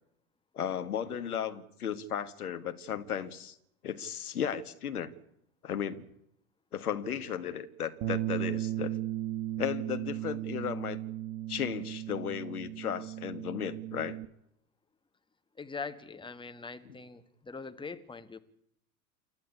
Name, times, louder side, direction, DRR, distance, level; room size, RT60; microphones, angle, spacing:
voice 1, 0.5-3.6 3.8-5.1 5.6-6.0 6.7-9.0 9.6-11.0 11.5-14.2, left 8 dB, 70° left, 1.8 m, -35 dB
Bass guitar, 8.0-14.3, right 13 dB, 50° right, 1.1 m, -36 dB
voice 2, 15.6-18.4, left 4 dB, 10° left, 1.5 m, -42 dB
28.5 x 12.0 x 9.6 m
figure-of-eight pair, 80°, 45 cm